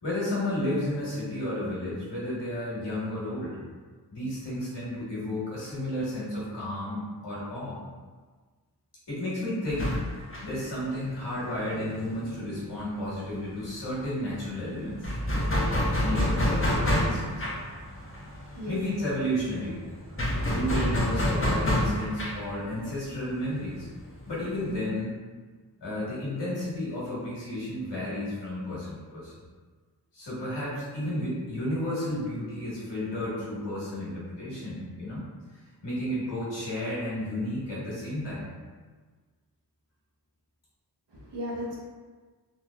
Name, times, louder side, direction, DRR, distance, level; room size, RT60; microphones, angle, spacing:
voice 1, 0.0-3.6 4.1-7.8 9.1-15.2 16.0-17.5 18.7-19.8 20.5-23.9 24.2-25.1 25.8-29.3 30.1-35.2 35.8-38.5, left 1 dB, 90° left, -8 dB, 1.5 m, -32 dB
sound 1, 9.7-13.1 13.3-13.5 13.8-24.7, left 1 dB, 30° left, 0.9 m, -29 dB
voice 2, 20.1-20.4 41.1-41.8, equal, 90° right, -4 dB, 0.9 m, -36 dB
4.1 x 2.8 x 2.4 m, 1.4 s
wide cardioid pair, 55°, 41 cm